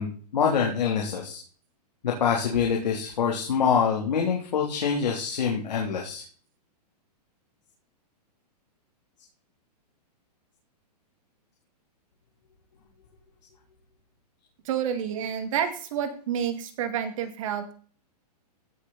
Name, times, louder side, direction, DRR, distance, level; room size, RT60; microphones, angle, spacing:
voice 1, 0.0-1.4 2.0-6.2, left 6 dB, 85° left, -1 dB, 3.2 m, -25 dB
voice 2, 14.6-17.7, right 8 dB, 50° right, 8 dB, 2.2 m, -29 dB
16.0 x 6.7 x 4.2 m, 0.41 s
hypercardioid pair, 150°, 21 cm